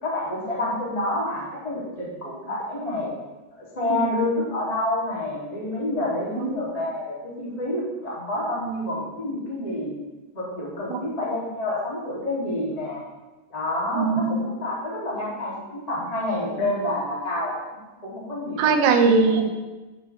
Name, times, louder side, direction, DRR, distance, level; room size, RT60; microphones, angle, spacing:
voice 1, 0.0-3.1 3.6-9.9 10.3-13.0 13.5-18.7 19.2-19.4, left 1 dB, 10° left, -7 dB, 1.8 m, -28 dB
voice 2, 14.0-14.5 18.6-19.5, right 4 dB, 75° right, 4 dB, 2.8 m, -20 dB
12.0 x 9.6 x 3.5 m, 1.2 s
omnidirectional pair, 5.9 m